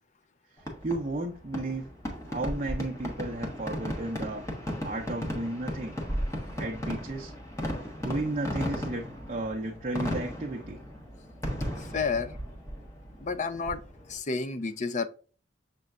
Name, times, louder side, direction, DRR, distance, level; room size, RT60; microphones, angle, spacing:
Fireworks, 0.6-14.2, equal, 15° left, 1.2 m, -36 dB
voice 1, 0.8-1.9 2.3-4.5 4.8-5.9 6.6-7.3 8.0-10.8, right 2 dB, 35° right, 0.6 m, -33 dB
voice 2, 11.8-12.4 13.2-13.8 14.1-15.1, left 4 dB, 40° left, 0.5 m, -30 dB
6.8 x 3.1 x 2.4 m
head